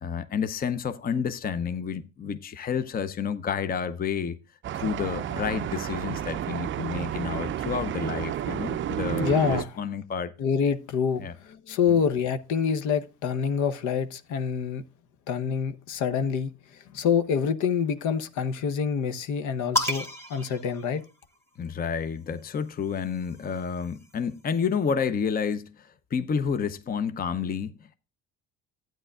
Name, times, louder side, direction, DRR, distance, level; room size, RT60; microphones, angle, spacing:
voice 1, 0.0-4.4 4.7-10.3 11.2-11.3 11.9-12.0 21.6-28.0, left 6 dB, 30° left, 0.7 m, -30 dB
sound 1, 4.6-9.6, right 10 dB, 40° right, 0.5 m, -31 dB
voice 2, 9.2-9.7 10.4-14.8 15.3-16.5 16.9-21.0, left 6 dB, 65° left, 0.9 m, -26 dB
sound 2, 19.8-21.6 22.7-24.3, left 1 dB, 10° left, 1.7 m, -33 dB
12.0 x 9.1 x 2.3 m
supercardioid pair, 90°, 32 cm